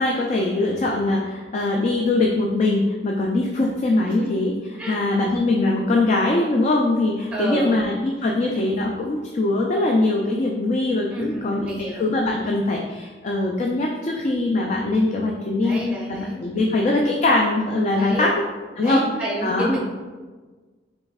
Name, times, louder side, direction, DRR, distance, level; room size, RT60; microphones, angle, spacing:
voice 1, 0.0-4.5 4.9-15.8 16.1-18.3 18.8-19.0 19.4-19.7, left 2 dB, 40° left, 0 dB, 0.4 m, -22 dB
voice 2, 7.3-7.8 11.1-12.0 15.6-16.4 17.9-18.3 18.8-19.8, right 1 dB, 5° right, -4 dB, 0.8 m, -29 dB
4.0 x 3.1 x 3.5 m, 1.4 s
head